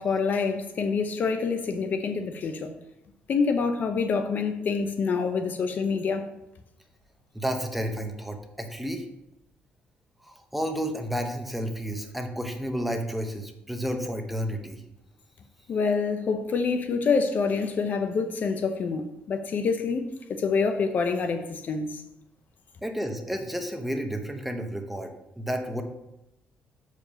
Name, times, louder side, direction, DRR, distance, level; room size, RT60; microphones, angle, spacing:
voice 1, 0.0-2.7 3.3-6.3 15.7-22.0, left 5 dB, 50° left, 7 dB, 0.7 m, -26 dB
voice 2, 7.3-9.0 10.2-14.8 22.8-25.8, equal, 5° right, 4 dB, 1.0 m, -31 dB
7.2 x 5.0 x 5.1 m, 0.88 s
cardioid pair, 110°, 4 cm